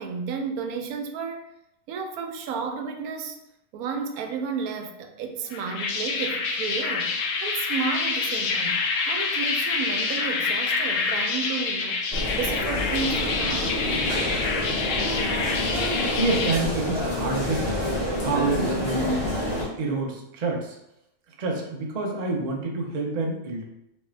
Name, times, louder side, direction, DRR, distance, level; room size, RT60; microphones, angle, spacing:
voice 1, 0.0-1.5 1.9-3.4 3.7-12.0 12.3-13.8, right 5 dB, 85° right, 5 dB, 1.0 m, -32 dB
sound 1, 5.5-16.6, left 4 dB, 70° left, 0.9 m, -27 dB
sound 2, 12.1-19.6, left 1 dB, 50° left, 1.1 m, -28 dB
voice 2, 16.1-17.8 18.2-19.2 19.8-20.8 21.4-23.6, right 3 dB, 45° right, 0 dB, 0.5 m, -27 dB
3.5 x 3.2 x 3.2 m, 0.83 s
omnidirectional pair, 1.5 m